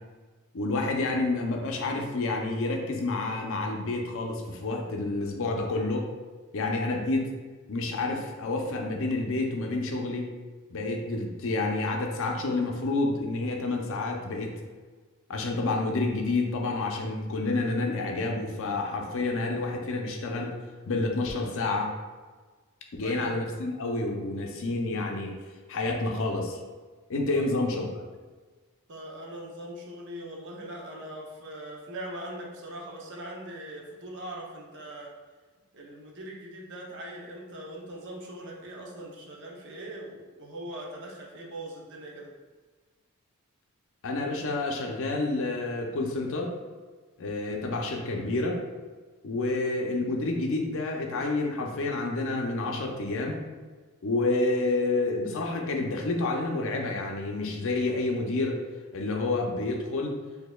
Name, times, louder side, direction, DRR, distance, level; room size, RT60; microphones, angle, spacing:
voice 1, 0.5-6.1 6.5-7.3 7.7-10.3 10.7-14.5 15.3-20.5 20.9-21.9 22.9-25.4 25.7-26.6 27.1-27.9 44.0-46.6 47.2-48.6 49.2-53.4 54.0-58.6 58.9-60.1, left 2 dB, 65° left, 1 dB, 0.5 m, -29 dB
voice 2, 23.0-23.3 27.3-27.5 28.9-35.1 35.7-42.3, right 1 dB, 55° right, -1 dB, 0.6 m, -41 dB
4.2 x 2.7 x 2.2 m, 1.4 s
head